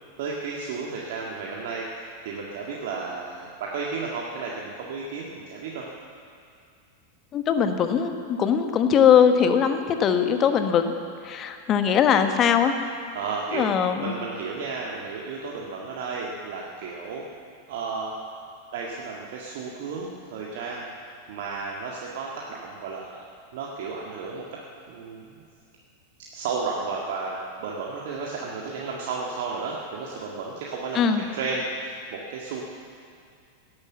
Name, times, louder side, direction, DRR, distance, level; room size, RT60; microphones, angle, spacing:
voice 1, 0.2-5.9 13.1-13.7 14.0-17.2 17.7-18.1 18.7-20.8 21.3-23.1 23.5-24.5 24.9-25.2 26.3-32.6, right 4 dB, 55° right, -3 dB, 1.8 m, -33 dB
voice 2, 7.3-10.9 11.2-12.7 13.5-14.1 30.9-31.2, left 8 dB, 30° left, 8 dB, 1.2 m, -21 dB
18.0 x 10.5 x 7.4 m, 2.3 s
figure-of-eight pair, 90°, 0 cm